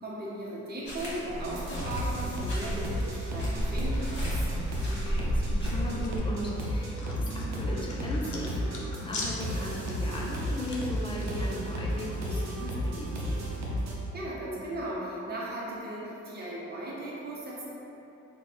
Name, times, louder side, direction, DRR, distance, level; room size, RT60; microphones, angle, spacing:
voice 1, 0.0-4.5 14.1-17.7, right 1 dB, 30° right, -6 dB, 0.9 m, -37 dB
sound 1, 0.8-6.2, equal, 35° left, 1.3 m, -34 dB
sound 2, 1.3-13.9, equal, 60° right, 0.7 m, -33 dB
voice 2, 4.9-13.4, left 1 dB, 15° left, -4 dB, 0.6 m, -37 dB
sound 3, 5.6-11.3, left 2 dB, 75° left, 0.7 m, -42 dB
3.2 x 2.3 x 4.2 m, 2.9 s
cardioid pair, 90°, 30 cm